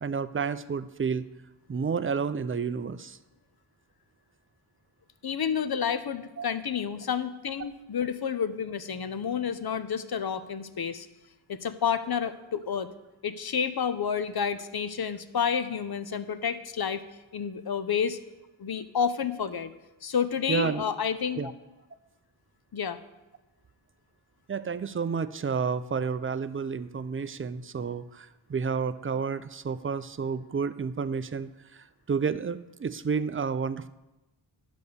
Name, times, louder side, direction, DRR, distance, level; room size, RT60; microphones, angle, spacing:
voice 1, 0.0-1.2 1.7-3.2 6.4-6.5 20.5-20.8 21.4-21.5 24.5-33.9, right 5 dB, 25° right, 13 dB, 0.4 m, -30 dB
voice 2, 5.2-11.1 11.5-12.9 13.2-17.0 17.3-18.2 18.6-19.7 20.0-21.5 22.7-23.0, left 7 dB, 50° left, 12 dB, 0.7 m, -30 dB
10.5 x 4.2 x 6.7 m, 1.0 s
cardioid pair, 40°, 49 cm